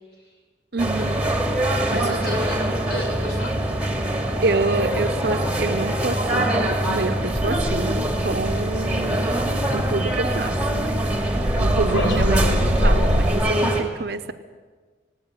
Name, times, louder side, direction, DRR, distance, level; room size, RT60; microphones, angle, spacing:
voice 1, 0.7-1.2 1.9-2.2 4.4-9.4 9.7-11.3 11.6-14.3, right 3 dB, 55° right, 10 dB, 0.8 m, -27 dB
sound 1, 0.8-13.8, right 1 dB, 5° right, 2.3 m, -24 dB
voice 2, 1.6-2.6 2.9-3.5 3.9-4.2 8.7-8.8 11.9-12.3, left 1 dB, 60° left, 0 dB, 6.9 m, -35 dB
sound 2, 7.3-13.3, equal, 85° left, 3.9 m, -25 dB
18.0 x 17.5 x 9.3 m, 1.4 s
head